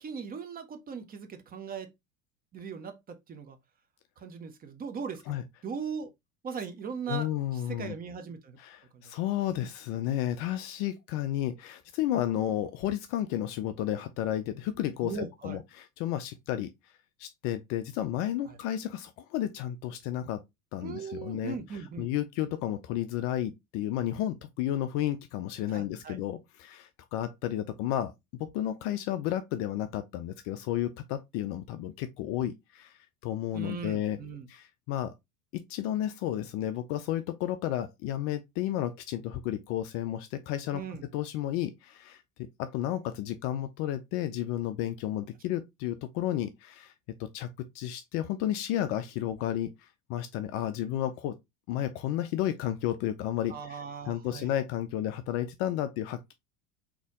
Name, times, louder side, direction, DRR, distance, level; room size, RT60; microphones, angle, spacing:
voice 1, 0.0-1.9 2.5-3.6 4.2-5.2 5.6-6.1 6.4-8.6 8.9-9.1 15.0-15.6 18.5-18.6 20.8-22.1 25.7-26.2 33.5-34.5 40.7-41.1 53.5-54.5, right 6 dB, 20° right, 0.7 m, -39 dB
voice 2, 7.1-7.9 8.6-16.7 17.2-20.4 20.7-21.6 22.0-28.1 28.4-34.2 34.5-35.1 35.5-40.8 41.1-46.9 47.2-51.4 51.7-53.8 54.1-56.3, left 12 dB, 35° left, 0.4 m, -32 dB
4.0 x 2.9 x 3.5 m
figure-of-eight pair, 75°, 41 cm